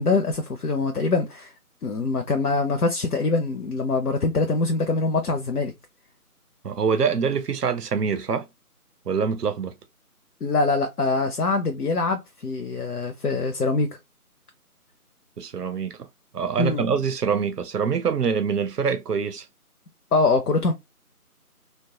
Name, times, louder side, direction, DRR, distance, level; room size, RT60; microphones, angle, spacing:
voice 1, 0.0-1.5 1.8-5.7 10.4-14.0 16.6-16.8 20.1-20.7, left 3 dB, 75° left, 0.6 m, -24 dB
voice 2, 6.6-8.5 9.1-9.7 15.4-16.0 16.3-19.5, right 6 dB, 85° right, 0.6 m, -25 dB
2.7 x 2.2 x 2.7 m
figure-of-eight pair, 165°, 46 cm